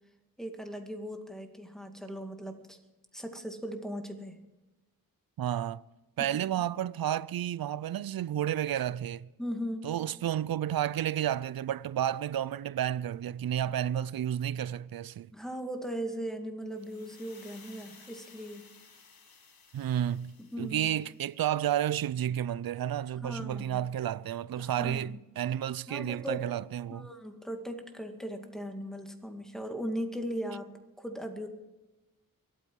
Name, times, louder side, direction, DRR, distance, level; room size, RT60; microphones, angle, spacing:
voice 1, 0.4-2.8 3.1-4.4 6.2-6.4 9.4-9.9 15.3-18.7 20.4-20.9 23.2-23.8 24.5-25.2 25.9-26.4 26.9-30.7 31.0-31.5, equal, ahead, 2.1 m, -38 dB
voice 2, 5.4-5.8 6.2-9.3 9.8-15.3 19.7-27.1, right 11 dB, 80° right, 0.5 m, -31 dB
sound 1, 16.7-21.7, left 5 dB, 85° left, 1.8 m, -57 dB
24.0 x 9.0 x 4.7 m
wide cardioid pair, 65°, 35 cm